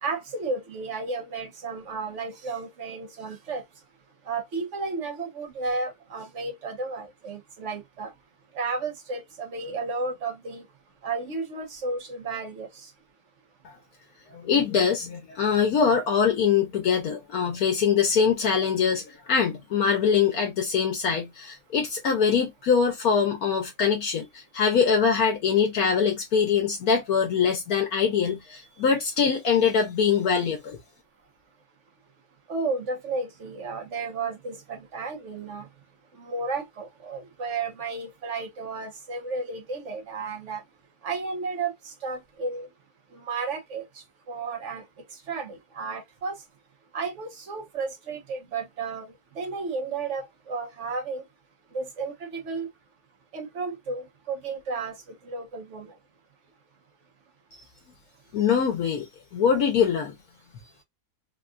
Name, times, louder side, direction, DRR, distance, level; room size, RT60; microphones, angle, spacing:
voice 1, 0.0-3.6 4.3-8.1 8.5-10.6 11.0-12.9 32.5-35.7 36.2-40.6 41.0-42.7 43.1-43.8 44.3-44.8 45.3-46.4 46.9-51.2 51.7-52.7 53.3-54.9 55.2-55.9, right 4 dB, 55° right, 1.1 m, -33 dB
voice 2, 14.3-30.8 58.3-59.1 59.3-60.2, left 6 dB, 70° left, 1.2 m, -23 dB
3.6 x 2.3 x 2.4 m
omnidirectional pair, 1.7 m